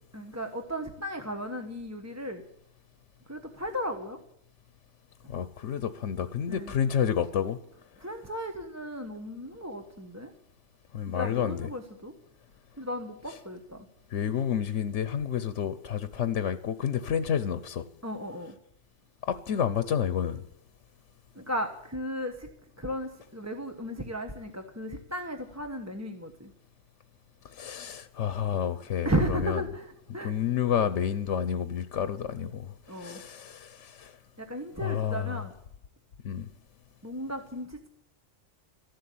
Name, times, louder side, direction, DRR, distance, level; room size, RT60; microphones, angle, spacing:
voice 1, 0.1-2.4 3.3-4.2 6.5-6.7 8.0-10.3 11.1-12.1 12.8-13.8 18.0-18.5 21.3-22.5 22.8-26.5 29.0-30.3 32.9-33.2 34.4-35.5 37.0-37.9, equal, 15° right, 1.2 m, -35 dB
voice 2, 5.3-7.6 10.9-11.7 13.3-13.4 14.1-17.8 19.2-20.4 27.4-29.6 30.2-34.2 34.8-35.4 36.2-36.5, left 8 dB, 85° left, 1.1 m, -30 dB
14.0 x 11.5 x 8.5 m
omnidirectional pair, 1.2 m